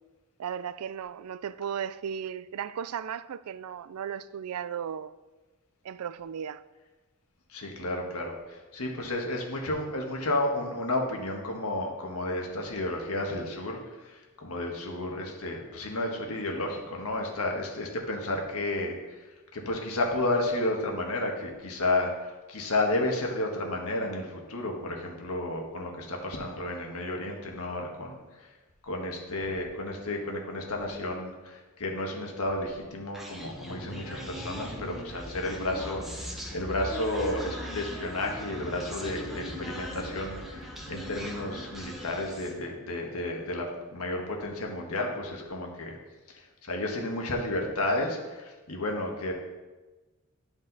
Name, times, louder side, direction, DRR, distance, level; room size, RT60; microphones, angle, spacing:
voice 1, 0.4-5.1 5.8-6.6, right 8 dB, 90° right, 0.4 m, -35 dB
voice 2, 7.5-28.4 28.8-46.0 46.3-49.3, left 2 dB, 90° left, 1.5 m, -32 dB
Human voice, 33.1-42.6, equal, ahead, 1.0 m, -39 dB
11.5 x 5.3 x 4.0 m
head